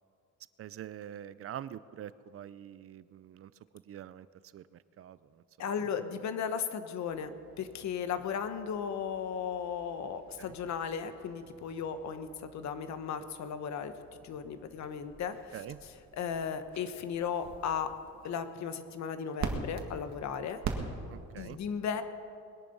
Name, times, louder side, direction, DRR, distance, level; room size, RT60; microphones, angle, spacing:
voice 1, 0.6-3.5 3.9-4.3 4.5-4.6 5.0-5.2 10.4-10.5 15.5-15.8 21.1-21.6, right 10 dB, 50° right, 16 dB, 0.5 m, -44 dB
voice 2, 5.6-13.9 14.2-17.9 18.2-20.6 21.4-22.0, left 7 dB, 65° left, 10 dB, 1.2 m, -36 dB
sound 1, 7.1-21.4, right 5 dB, 65° right, 1.8 m, -45 dB
21.0 x 11.0 x 5.4 m, 2.4 s
cardioid pair, 125°, 30 cm